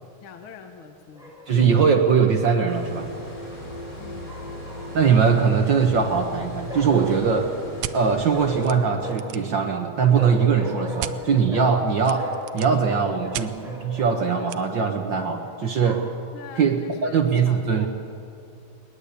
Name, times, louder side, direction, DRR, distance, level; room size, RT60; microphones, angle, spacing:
voice 1, 0.2-1.3 4.0-4.4 16.3-17.2 17.4-17.9, left 6 dB, 50° left, 5 dB, 1.9 m, -42 dB
Bark, 1.2-1.8 4.2-5.3 6.7-7.6 8.3-9.4 10.1-11.9 12.1-14.5 15.2-16.1, equal, ahead, 5.8 m, -37 dB
voice 2, 1.5-3.1 4.9-7.5 7.9-12.2 12.5-16.0 16.6-17.9, right 6 dB, 55° right, 4 dB, 1.3 m, -21 dB
sound 1, 2.7-8.6, left 1 dB, 85° left, 8.6 m, -37 dB
sound 2, 7.8-8.0 8.6-8.7 9.1-9.5 11.0-11.2 12.0-12.8 13.3-13.5 14.5-14.6, right 13 dB, 75° right, 1.7 m, -33 dB
20.5 x 20.0 x 8.3 m, 2.7 s
omnidirectional pair, 3.4 m